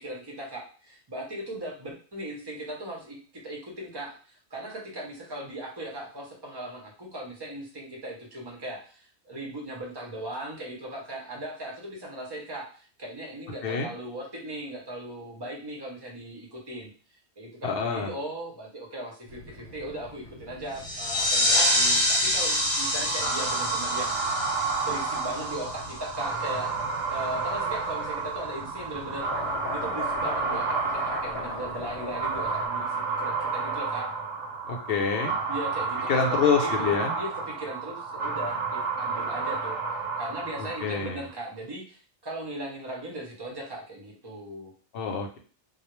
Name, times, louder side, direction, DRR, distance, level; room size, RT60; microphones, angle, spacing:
voice 1, 0.0-3.2 3.4-16.9 17.4-24.1 24.8-26.7 27.1-34.1 35.5-39.8 40.2-44.7, right 1 dB, 30° right, -1 dB, 0.5 m, -38 dB
voice 2, 17.6-18.1 34.7-35.3 36.1-37.1 40.8-41.2 44.9-45.4, left 6 dB, 60° left, 2 dB, 0.7 m, -26 dB
sound 1, 19.3-32.7, left 3 dB, 80° left, 1.0 m, -42 dB
sound 2, 20.8-26.1, left 1 dB, 25° left, 0.3 m, -26 dB
sound 3, 22.3-41.2, right 4 dB, 80° right, 1.0 m, -31 dB
2.3 x 2.0 x 3.0 m, 0.40 s
omnidirectional pair, 1.2 m